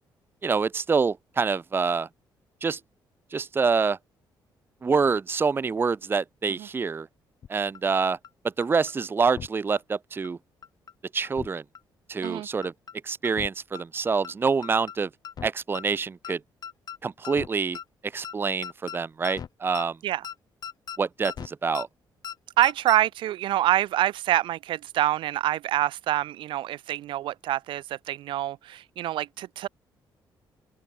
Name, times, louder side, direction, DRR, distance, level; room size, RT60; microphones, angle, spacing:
voice 1, 0.4-2.1 2.6-2.8 3.3-4.0 4.8-7.1 7.5-8.2 8.6-10.4 11.1-11.6 12.1-12.7 13.0-15.1 15.4-16.4 17.0-17.8 18.1-20.0 21.0-21.9, right 5 dB, 25° right, 0.8 m, -26 dB
sound 1, 7.4-7.5 7.7-7.8 8.2-8.3 8.6-8.9 9.2-9.5 9.7-9.8 10.2-10.3 10.6-10.9 11.2-11.5 11.7-11.8 12.2-12.3 12.6-12.9 13.2-13.5 13.7-13.8 14.2-14.3 14.6-15.0 15.2-15.5 15.7-15.8 16.2-16.3 16.6-17.0 17.2-17.5 17.7-17.8 18.2-18.3 18.6-19.0 19.2-19.5 19.7-19.8 20.2-20.3 20.6-21.0 21.2-21.5 21.7-21.9 22.2-22.4 22.6-23.0, left 8 dB, 55° left, 4.2 m, -38 dB
voice 2, 22.6-29.7, right 13 dB, 85° right, 2.0 m, -26 dB
open air
cardioid pair, 115°, 8 cm